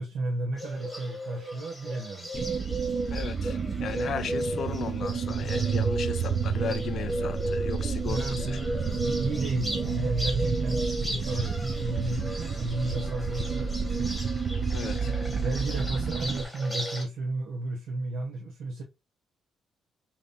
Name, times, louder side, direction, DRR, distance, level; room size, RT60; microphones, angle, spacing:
voice 1, 0.0-2.3 8.0-8.7 8.9-14.2 15.0-18.8, right 2 dB, 75° right, 0.8 m, -33 dB
Bird, 0.6-17.0, right 1 dB, 5° right, 2.1 m, -35 dB
sound 1, 2.3-16.4, right 5 dB, 40° right, 0.6 m, -30 dB
voice 2, 3.1-8.6 14.7-15.1, left 7 dB, 60° left, 0.5 m, -36 dB
5.1 x 2.8 x 2.5 m
cardioid pair, 90°, 0 cm